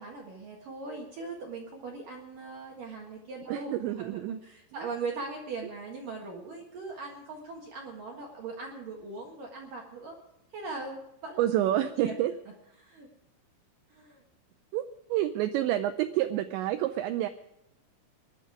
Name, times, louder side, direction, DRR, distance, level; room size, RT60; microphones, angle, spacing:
voice 1, 0.0-10.2 10.5-11.4 12.0-12.2 12.8-13.1 13.9-14.2, right 3 dB, 55° right, -1 dB, 2.7 m, -40 dB
voice 2, 3.5-4.4 11.4-12.3 14.7-17.3, right 13 dB, 80° right, 9 dB, 2.6 m, -28 dB
20.5 x 11.5 x 4.8 m, 0.82 s
omnidirectional pair, 5.8 m